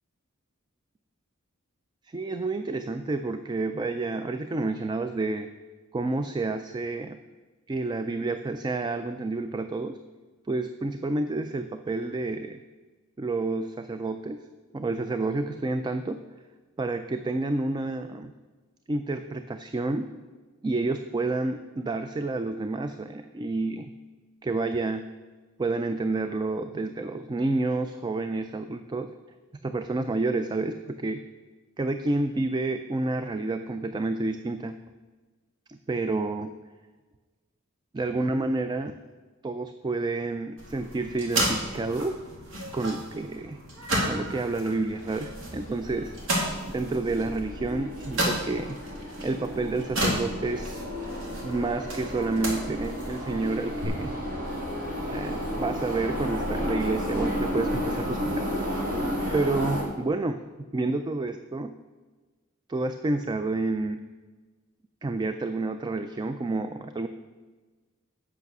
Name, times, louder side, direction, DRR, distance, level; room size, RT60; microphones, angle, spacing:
voice 1, 2.1-5.5 5.9-7.2 7.7-10.0 10.5-12.6 13.2-14.4 14.7-16.2 16.8-18.3 18.9-20.1 20.6-23.9 24.4-25.1 25.6-29.1 29.6-31.2 31.8-34.8 35.7-36.5 37.9-38.9 39.4-42.2 42.7-43.6 44.1-46.1 46.7-48.8 49.2-50.8 51.4-54.1 55.1-58.6 59.3-60.4 60.7-61.7 62.7-64.0 65.0-67.1, right 3 dB, 20° right, 9 dB, 0.3 m, -29 dB
sound 1, 40.6-53.9, right 1 dB, 65° right, 2.2 m, -33 dB
sound 2, 45.0-59.8, equal, 40° right, 2.2 m, -32 dB
8.1 x 6.1 x 6.1 m, 1.3 s
head